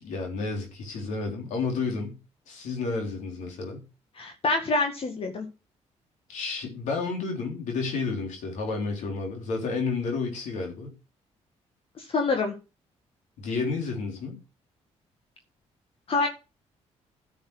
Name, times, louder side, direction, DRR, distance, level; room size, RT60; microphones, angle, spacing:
voice 1, 0.0-2.2 2.5-3.8 6.3-10.9 13.4-14.4, left 4 dB, 80° left, 2 dB, 3.8 m, -31 dB
voice 2, 4.2-5.5 12.0-12.5 16.1-16.3, left 3 dB, 50° left, 4 dB, 1.9 m, -26 dB
10.5 x 7.2 x 6.3 m, 0.31 s
cardioid pair, 80°, 13 cm